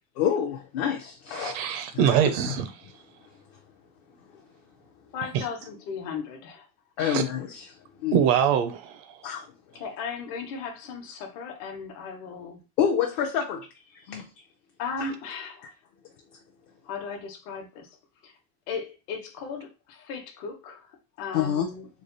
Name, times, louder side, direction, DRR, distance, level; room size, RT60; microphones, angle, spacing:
voice 1, 0.2-1.6 7.0-7.7 8.0-8.2 9.2-9.5 12.8-13.7 13.9-14.3 15.0-15.1 21.3-21.7, left 8 dB, 45° left, 0.5 m, -27 dB
voice 2, 1.3-2.7 5.3-5.4 7.0-7.2 8.1-9.2, right 8 dB, 45° right, 0.5 m, -24 dB
voice 3, 5.1-6.7 9.7-12.6 14.8-15.7 16.8-18.0 18.2-18.4 18.7-21.9, left 5 dB, 65° left, 1.0 m, -36 dB
3.3 x 2.2 x 3.8 m
cardioid pair, 175°, 42 cm